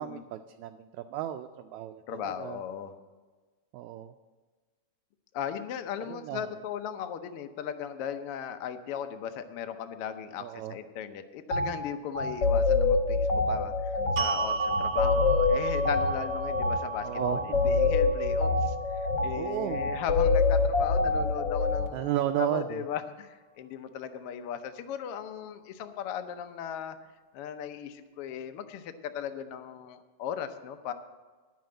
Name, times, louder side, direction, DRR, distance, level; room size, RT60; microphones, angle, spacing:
voice 1, 0.0-2.6 3.7-4.1 6.1-6.5 10.4-10.7 17.0-17.8 19.4-20.0 21.9-22.8, right 12 dB, 80° right, 6 dB, 1.8 m, -33 dB
voice 2, 2.1-2.9 5.3-27.0 27.3-30.9, left 8 dB, 75° left, 8 dB, 1.3 m, -37 dB
sound 1, 11.5-11.7 12.1-21.9, left 3 dB, 50° left, 1.5 m, -26 dB
sound 2, 14.2-20.4, right 5 dB, 50° right, 1.3 m, -35 dB
10.5 x 7.1 x 7.7 m, 1.3 s
omnidirectional pair, 3.4 m